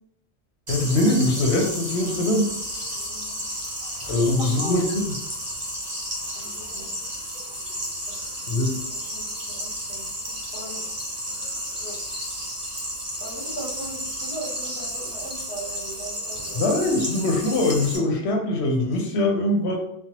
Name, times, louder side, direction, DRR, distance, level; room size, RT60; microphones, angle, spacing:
voice 1, 0.7-2.5 4.1-5.2 8.5-8.7 16.5-19.8, left 2 dB, 75° left, 2 dB, 0.9 m, -22 dB
sound 1, 0.7-18.0, equal, 35° right, 0.6 m, -32 dB
voice 2, 3.0-3.4 4.2-4.8 6.3-6.9 8.1-8.3 8.7-10.1 10.5-10.8 11.7-12.0 13.2-16.6, right 1 dB, 55° left, -5 dB, 1.3 m, -39 dB
3.3 x 2.0 x 2.8 m, 0.74 s
omnidirectional pair, 1.1 m